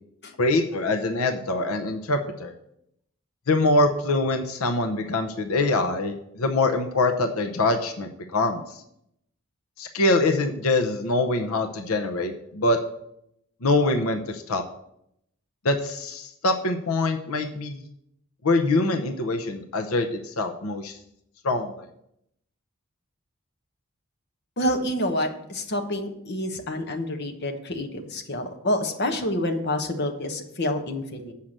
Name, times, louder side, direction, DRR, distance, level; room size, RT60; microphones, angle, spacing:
voice 1, 0.4-2.5 3.5-8.6 9.8-12.8 13.6-14.6 15.6-17.8 18.4-21.0 21.4-21.9, left 2 dB, 85° left, 5 dB, 0.8 m, -24 dB
voice 2, 24.6-31.3, left 1 dB, 50° left, 4 dB, 1.1 m, -28 dB
7.5 x 5.7 x 6.5 m, 0.77 s
head